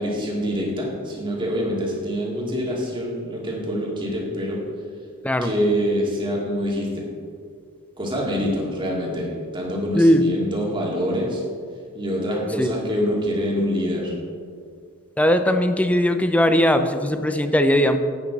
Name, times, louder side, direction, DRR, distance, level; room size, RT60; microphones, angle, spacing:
voice 1, 0.0-4.6 5.4-7.0 8.0-11.4 11.9-14.2, equal, 20° right, -3 dB, 2.3 m, -25 dB
voice 2, 15.2-18.0, equal, 5° left, 8 dB, 0.5 m, -19 dB
11.0 x 8.7 x 4.0 m, 2.1 s
head